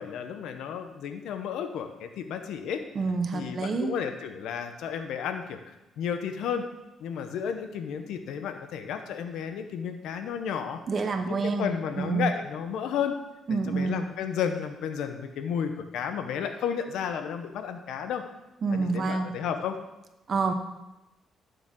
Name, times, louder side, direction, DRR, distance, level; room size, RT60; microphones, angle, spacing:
voice 1, 0.0-2.8 3.3-5.6 6.0-6.7 7.0-10.8 11.3-13.1 13.5-18.2 18.7-19.8, left 7 dB, 85° left, 7 dB, 0.9 m, -32 dB
voice 2, 2.9-3.9 10.9-11.7 12.0-12.3 13.5-14.0 18.6-19.3 20.3-20.5, right 4 dB, 45° right, 7 dB, 1.0 m, -27 dB
11.5 x 6.9 x 3.8 m, 0.97 s
cardioid pair, 90°, 0 cm